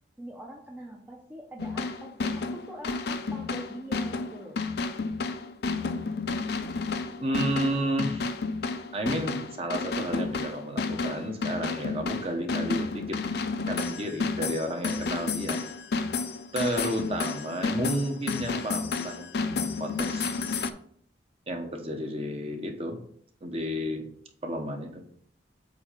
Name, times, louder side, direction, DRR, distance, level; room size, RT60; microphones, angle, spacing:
voice 1, 0.2-4.6, right 1 dB, 10° right, -1 dB, 0.6 m, -44 dB
sound 1, 1.6-20.7, left 4 dB, 65° left, 0.5 m, -31 dB
voice 2, 7.2-8.3 8.9-13.2 13.7-15.6 16.5-20.3 21.5-23.0 23.4-24.1 24.4-25.0, right 1 dB, 35° right, 3 dB, 1.0 m, -32 dB
8.0 x 2.8 x 5.1 m, 0.62 s
head